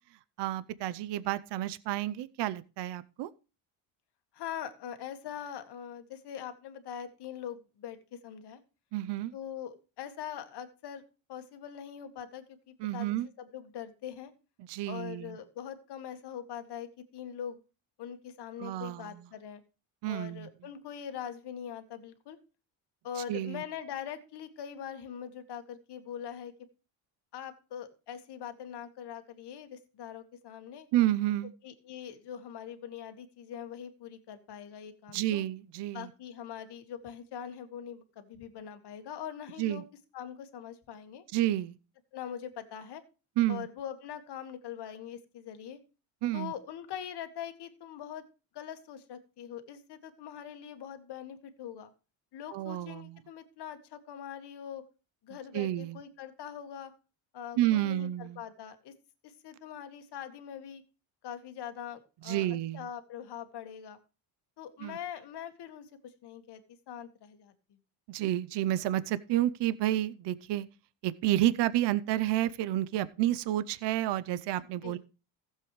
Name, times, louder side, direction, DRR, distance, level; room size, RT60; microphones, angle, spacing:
voice 1, 0.4-3.3 8.9-9.3 12.8-13.3 14.7-15.4 18.6-19.2 20.0-20.5 23.2-23.6 30.9-31.5 35.1-36.1 39.6-39.8 41.3-41.8 43.4-43.7 46.2-46.5 52.5-53.2 55.5-56.0 57.6-58.4 62.2-62.9 64.8-65.0 68.1-70.7 71.0-75.0, right 14 dB, 65° right, 0.8 m, -30 dB
voice 2, 4.3-8.6 9.3-11.0 11.3-14.3 14.9-17.6 18.0-19.6 20.1-22.4 23.0-26.5 27.3-30.9 31.6-35.4 35.9-39.8 40.1-41.2 42.1-43.0 43.5-45.8 46.3-48.2 48.5-51.9 52.3-54.9 55.2-56.9 57.3-58.9 59.2-60.8 61.2-62.5 62.7-64.0 64.6-67.5 74.8-75.0, left 9 dB, 60° left, 1.8 m, -42 dB
15.0 x 7.6 x 3.2 m
cardioid pair, 115°, 46 cm